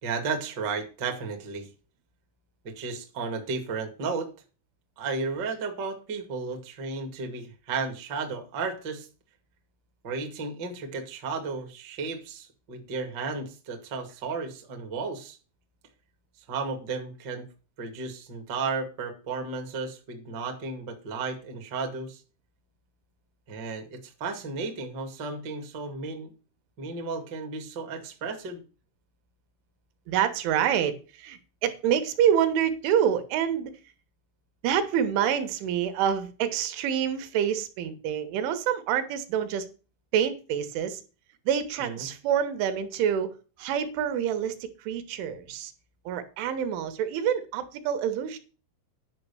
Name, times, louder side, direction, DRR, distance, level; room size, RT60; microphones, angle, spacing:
voice 1, 0.0-1.7 2.6-4.3 5.0-9.1 10.0-15.4 16.5-17.5 17.8-22.2 23.5-26.3 26.8-28.6 41.8-42.1, right 4 dB, 60° right, 1.1 m, -33 dB
voice 2, 30.1-33.7 34.6-39.7 40.1-41.0 41.5-45.7 46.1-48.4, right 9 dB, 80° right, 3.5 m, -27 dB
10.5 x 6.0 x 6.8 m
omnidirectional pair, 5.6 m